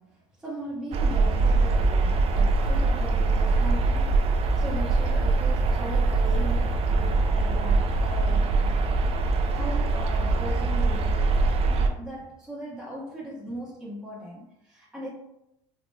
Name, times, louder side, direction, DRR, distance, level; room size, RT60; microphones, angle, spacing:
voice 1, 0.0-8.9 9.5-11.3 11.6-15.1, right 1 dB, 5° right, -6 dB, 1.2 m, -38 dB
sound 1, 0.9-11.9, right 3 dB, 40° right, 0.5 m, -23 dB
4.0 x 2.9 x 2.2 m, 0.83 s
supercardioid pair, 100°, 15 cm